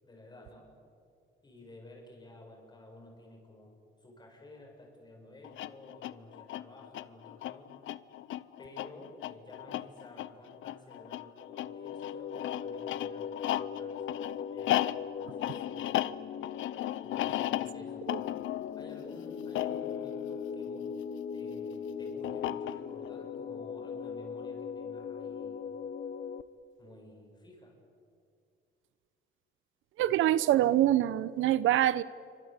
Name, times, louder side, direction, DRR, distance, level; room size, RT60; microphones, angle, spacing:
voice 1, 0.0-0.7 1.4-7.7 8.6-15.9 17.0-18.1 18.7-20.9 21.3-25.6 26.8-27.8, left 1 dB, 20° left, 1 dB, 7.8 m, -53 dB
sound 1, 5.4-21.2 22.2-23.1, left 13 dB, 75° left, 0.9 m, -36 dB
sound 2, 11.4-26.4, left 7 dB, 45° left, 1.1 m, -40 dB
voice 2, 30.0-32.0, right 13 dB, 75° right, 17 dB, 0.8 m, -25 dB
28.0 x 25.0 x 8.3 m, 2.5 s
cardioid pair, 125°, 21 cm